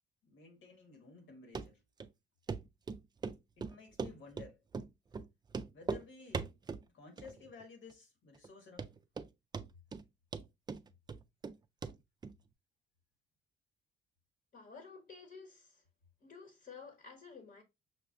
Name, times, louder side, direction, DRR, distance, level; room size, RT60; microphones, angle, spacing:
voice 1, 0.2-1.8 3.6-4.6 5.7-6.5 6.9-8.9, left 4 dB, 80° left, 1.5 m, -54 dB
Run, 1.5-1.7 2.0-2.1 2.5-2.6 2.9-4.5 4.7-4.9 5.1-5.2 5.5-6.0 6.3-6.8 7.2-7.6 7.9-8.0 8.4-8.5 8.8-9.3 9.5-10.0 10.3-11.5 11.8-11.9 12.2-12.3, right 5 dB, 20° right, 0.3 m, -39 dB
voice 2, 14.5-15.8 16.2-17.6, left 5 dB, 50° left, 1.0 m, -52 dB
6.0 x 2.1 x 2.4 m
cardioid pair, 90°, 20 cm